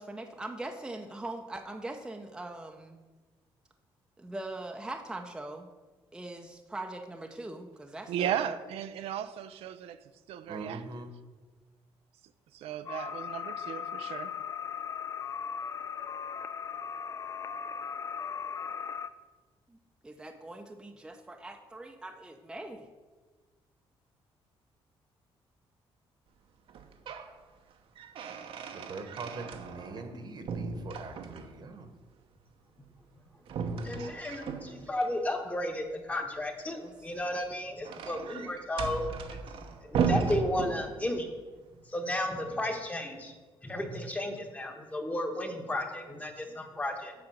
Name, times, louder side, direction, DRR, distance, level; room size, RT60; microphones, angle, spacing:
voice 1, 0.0-3.0 4.2-5.7 6.1-8.6 19.7-19.8 20.0-22.9 36.8-37.1, right 2 dB, 10° right, 0.6 m, -41 dB
voice 2, 8.1-10.0 10.3-10.8 12.5-14.3, right 10 dB, 85° right, 0.5 m, -35 dB
voice 3, 10.5-11.1 28.7-31.9, right 3 dB, 45° right, 1.1 m, -42 dB
sound 1, 12.9-19.1, left 7 dB, 35° left, 0.4 m, -38 dB
sound 2, 26.7-27.3 27.7-30.2 30.5-31.7 33.5-35.1 37.1-41.3, right 6 dB, 65° right, 0.9 m, -35 dB
voice 4, 33.8-39.4 39.8-41.3 41.9-43.3 43.6-47.1, left 1 dB, 15° left, 1.1 m, -33 dB
7.9 x 5.0 x 7.1 m
cardioid pair, 130°, 10 cm